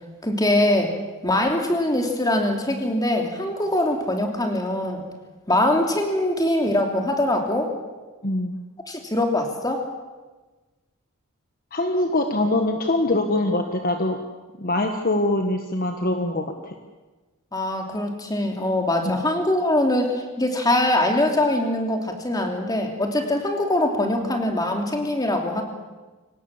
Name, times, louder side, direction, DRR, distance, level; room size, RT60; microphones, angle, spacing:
voice 1, 0.2-1.0 1.2-5.0 5.5-7.7 8.9-9.9 17.5-25.6, left 1 dB, 15° left, 2 dB, 3.0 m, -23 dB
voice 2, 8.2-8.6 11.7-14.2 14.6-16.7 19.0-19.2, left 1 dB, 40° left, 5 dB, 1.4 m, -23 dB
24.5 x 18.5 x 7.3 m, 1.2 s
head